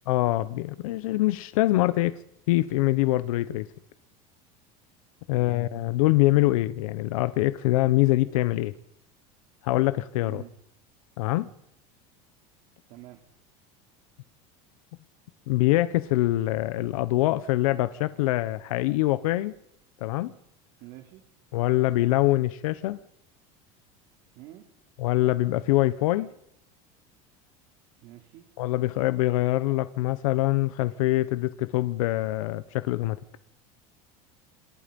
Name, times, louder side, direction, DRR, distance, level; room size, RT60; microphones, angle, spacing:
voice 1, 0.1-2.2 2.5-3.7 5.3-8.7 9.6-10.4 11.2-11.5 15.5-19.5 20.0-20.3 21.5-23.0 25.0-26.3 28.6-33.2, left 17 dB, 90° left, 1.2 m, -24 dB
voice 2, 10.2-10.5 12.9-13.2 20.8-21.2 24.3-24.7 28.0-28.5, right 15 dB, 60° right, 3.3 m, -47 dB
28.0 x 27.5 x 5.5 m
supercardioid pair, 150°, 17 cm